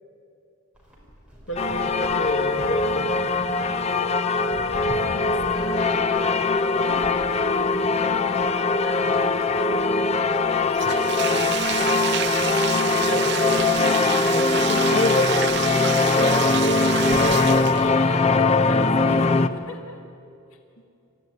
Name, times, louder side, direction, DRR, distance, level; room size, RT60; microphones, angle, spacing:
Livestock farm animals working animals, 0.7-18.4, equal, 5° right, 5.1 m, -45 dB
voice 1, 1.5-3.1 13.0-13.4 14.3-15.5, left 1 dB, 70° left, 1 dB, 2.3 m, -29 dB
sound 1, 1.6-19.5, left 3 dB, 30° left, 0.6 m, -21 dB
voice 2, 4.7-9.5 10.4-12.2 17.2-20.0 20.5-20.6, left 3 dB, 85° left, 2 dB, 2.1 m, -41 dB
Bathtub (filling or washing), 10.7-18.0, right 9 dB, 50° right, 0.7 m, -29 dB
28.0 x 15.0 x 9.4 m, 2.7 s
head